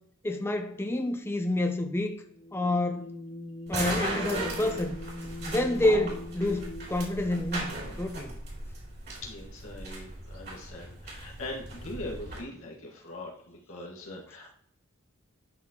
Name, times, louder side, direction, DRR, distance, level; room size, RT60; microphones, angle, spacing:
voice 1, 0.2-2.1 2.5-3.1 3.7-5.0 5.5-8.3, left 1 dB, 10° left, 0.5 m, -28 dB
sound 1, 2.3-6.9, left 1 dB, 25° left, 1.2 m, -42 dB
sound 2, 3.7-12.4, right 2 dB, 50° right, 2.5 m, -37 dB
voice 2, 9.2-14.6, left 1 dB, 70° left, 1.9 m, -41 dB
11.0 x 4.2 x 2.9 m
head